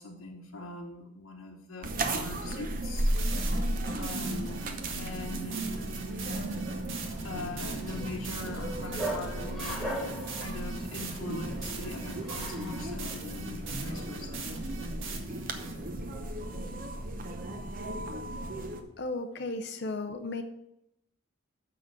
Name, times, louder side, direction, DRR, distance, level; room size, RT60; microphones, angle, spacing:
voice 1, 0.0-3.1 3.8-5.7 7.2-14.5, left 2 dB, 85° left, -1 dB, 1.1 m, -42 dB
sound 1, 1.8-18.8, right 1 dB, 40° right, 0.8 m, -35 dB
sound 2, 3.0-15.7, right 5 dB, 70° right, 1.4 m, -42 dB
Bark, 7.1-13.0, right 1 dB, ahead, 1.1 m, -39 dB
voice 2, 19.0-20.4, left 2 dB, 50° left, 7 dB, 0.6 m, -34 dB
7.0 x 5.9 x 6.5 m, 0.83 s
head